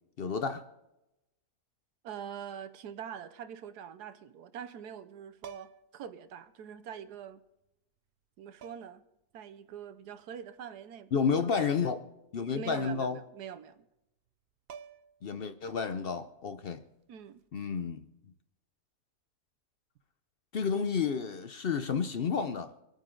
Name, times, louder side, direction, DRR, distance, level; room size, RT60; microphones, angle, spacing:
voice 1, 0.2-0.7 11.1-12.0 12.3-13.2 15.2-16.8 17.5-18.0 20.5-22.7, left 6 dB, 60° left, 0.6 m, -31 dB
voice 2, 2.0-7.4 8.4-9.0 9.3-11.1 12.5-13.9 17.1-17.4, right 8 dB, 90° right, 1.4 m, -44 dB
sound 1, 5.4-6.0 7.3-7.4 8.6-9.1 11.6-12.0 12.3-12.4 14.3-14.4 14.7-15.3 17.2-17.5, right 7 dB, 60° right, 0.6 m, -49 dB
26.0 x 9.1 x 3.8 m
omnidirectional pair, 1.6 m